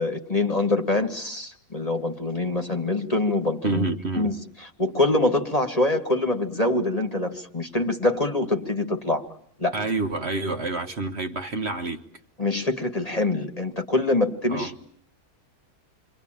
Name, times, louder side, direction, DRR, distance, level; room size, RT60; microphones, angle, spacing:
voice 1, 0.0-3.8 4.2-4.4 4.8-9.2 9.6-9.7 12.4-14.8, left 2 dB, 25° left, 1.7 m, -24 dB
voice 2, 3.6-4.3 9.7-12.0 14.5-14.7, right 3 dB, 45° right, 1.5 m, -28 dB
28.5 x 23.5 x 8.9 m
omnidirectional pair, 1.6 m